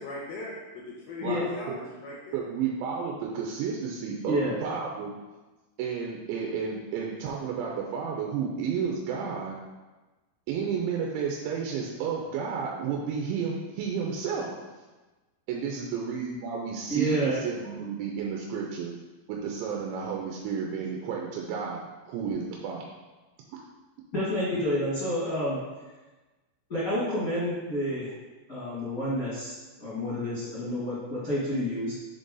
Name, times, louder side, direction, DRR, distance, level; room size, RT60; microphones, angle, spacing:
voice 1, 0.0-2.5, left 2 dB, 80° left, -4 dB, 2.1 m, -39 dB
voice 2, 2.3-5.1 5.8-9.6 10.5-14.6 15.5-18.9 19.3-22.8, right 6 dB, 90° right, -1 dB, 3.0 m, -32 dB
voice 3, 16.9-17.4 24.1-25.6 26.7-28.1 28.5-32.0, equal, 50° left, -11 dB, 1.0 m, -29 dB
6.8 x 3.9 x 3.8 m, 1.2 s
omnidirectional pair, 5.1 m